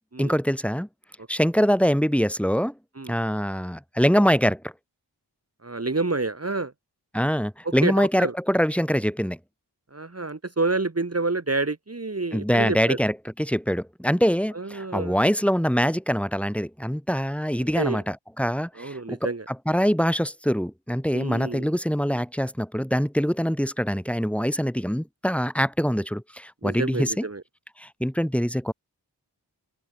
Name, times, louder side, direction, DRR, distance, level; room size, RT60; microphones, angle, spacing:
voice 1, 0.2-0.9 1.3-2.7 3.1-4.7 7.1-9.4 12.3-27.2 27.8-28.7, equal, 5° left, 4.8 m, -24 dB
voice 2, 5.6-6.7 7.6-8.3 9.9-13.0 14.5-15.2 17.8-18.0 18.8-19.5 21.1-21.7 26.6-27.4, right 3 dB, 35° right, 2.4 m, -28 dB
open air
wide cardioid pair, 55°, 42 cm